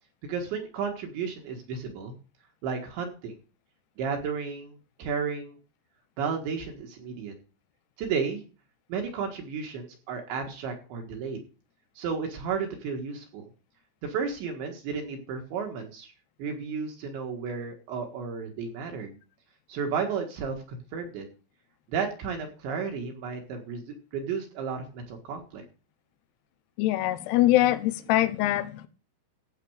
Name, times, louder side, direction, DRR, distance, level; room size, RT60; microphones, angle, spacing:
voice 1, 0.2-2.1 2.6-3.4 4.0-5.6 6.2-7.3 8.0-8.4 8.9-11.4 12.0-13.5 14.0-16.1 16.4-19.2 19.7-21.3 21.9-25.6, right 6 dB, 65° right, 3.8 m, -33 dB
voice 2, 26.8-28.9, left 15 dB, 90° left, 2.4 m, -23 dB
15.5 x 7.8 x 4.9 m
omnidirectional pair, 6.0 m